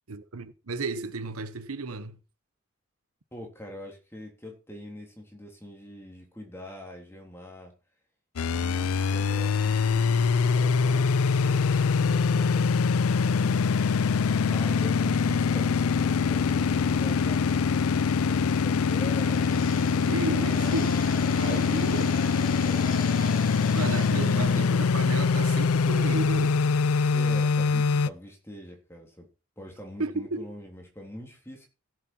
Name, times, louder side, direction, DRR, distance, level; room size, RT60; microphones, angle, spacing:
voice 1, 0.1-2.2 20.1-20.9 21.4-22.2 23.7-26.6 30.0-30.5, right 3 dB, 85° right, 1.0 m, -33 dB
voice 2, 3.3-7.7 8.5-17.4 17.9-20.9 24.0-24.8 27.1-29.2 29.6-31.7, equal, 10° left, 3.3 m, -43 dB
sound 1, 8.4-28.1, left 5 dB, 85° left, 0.5 m, -24 dB
sound 2, 18.9-24.6, left 2 dB, 40° left, 2.5 m, -42 dB
16.0 x 7.6 x 4.4 m
head